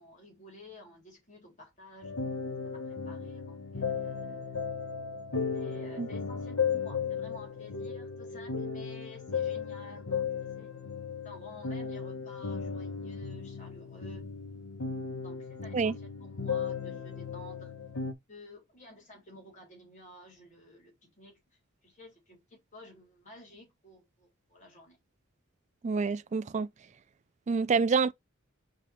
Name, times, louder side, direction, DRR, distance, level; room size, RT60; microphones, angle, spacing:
voice 1, 0.0-2.2 2.6-4.5 5.5-10.7 11.2-14.4 15.2-17.7 18.3-21.4 21.8-25.0, equal, 35° left, 3.3 m, -52 dB
sound 1, 2.0-18.1, left 6 dB, 80° left, 1.1 m, -35 dB
voice 2, 25.8-26.7 27.5-28.1, right 5 dB, 35° right, 0.3 m, -27 dB
5.0 x 4.2 x 4.9 m
head